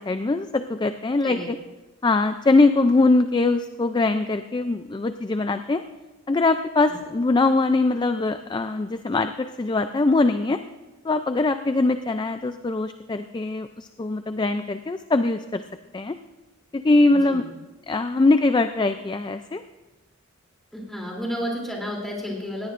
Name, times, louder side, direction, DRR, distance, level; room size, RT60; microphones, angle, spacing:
voice 1, 0.0-1.6 2.0-5.8 6.3-10.6 11.0-15.6 15.9-16.1 16.7-17.4 17.9-19.6, left 3 dB, 20° left, 9 dB, 0.3 m, -22 dB
voice 2, 17.1-17.5 20.7-22.7, equal, ahead, -3 dB, 3.0 m, -32 dB
19.0 x 16.5 x 2.5 m, 1.1 s
head